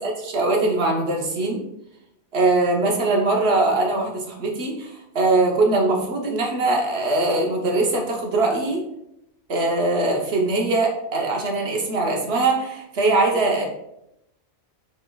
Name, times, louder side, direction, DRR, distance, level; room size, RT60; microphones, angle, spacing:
voice 1, 0.0-1.6 2.3-8.8 9.5-13.7, right 2 dB, 55° right, 0 dB, 1.0 m, -21 dB
5.3 x 4.3 x 2.3 m, 0.83 s
omnidirectional pair, 1.4 m